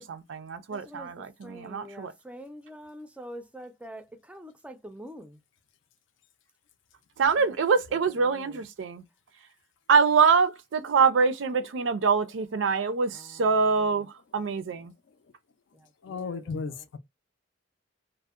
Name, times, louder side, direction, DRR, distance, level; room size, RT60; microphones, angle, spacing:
voice 1, 0.0-2.1 7.2-9.0 9.9-14.9, right 5 dB, 80° right, 0.4 m, -25 dB
voice 2, 0.7-5.4 7.4-8.7 13.1-13.9 15.7-16.9, equal, 5° right, 0.4 m, -46 dB
voice 3, 16.0-17.0, left 5 dB, 75° left, 0.4 m, -34 dB
2.6 x 2.0 x 2.3 m
head